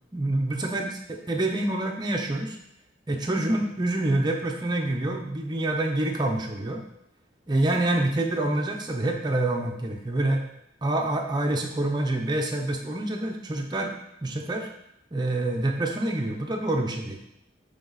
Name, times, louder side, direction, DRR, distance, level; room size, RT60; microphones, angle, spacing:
voice 1, 0.1-0.9 1.3-2.6 3.1-6.8 7.5-10.4 10.8-14.7 15.1-17.2, right 2 dB, 20° right, 2 dB, 0.7 m, -26 dB
8.8 x 3.5 x 4.0 m, 0.78 s
head